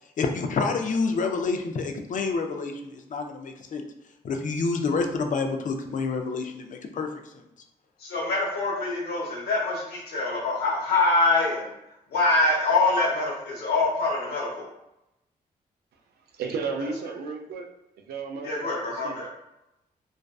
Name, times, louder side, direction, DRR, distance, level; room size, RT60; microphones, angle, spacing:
voice 1, 0.2-3.8 4.2-7.1 7.3-7.4, left 4 dB, 55° left, 4 dB, 0.4 m, -28 dB
voice 2, 8.0-11.7 12.1-14.7 18.4-19.3, left 2 dB, 85° left, -3 dB, 0.8 m, -25 dB
voice 3, 16.3-17.7 18.1-19.3, right 4 dB, 90° right, 3 dB, 0.4 m, -34 dB
2.4 x 2.3 x 2.3 m, 0.88 s
cardioid pair, 65°, 16 cm